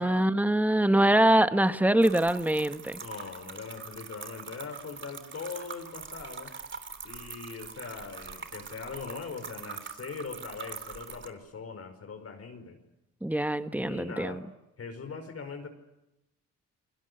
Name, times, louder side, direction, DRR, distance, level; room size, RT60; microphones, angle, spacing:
voice 1, 0.0-3.0 13.2-14.4, right 1 dB, 5° right, 10 dB, 1.5 m, -24 dB
sound 1, 2.0-11.3, right 5 dB, 40° right, 3.3 m, -43 dB
voice 2, 3.0-6.5 7.0-12.8 13.8-14.4 14.8-15.7, left 5 dB, 50° left, 6 dB, 5.1 m, -41 dB
28.5 x 21.0 x 8.0 m, 0.91 s
cardioid pair, 90°, 30 cm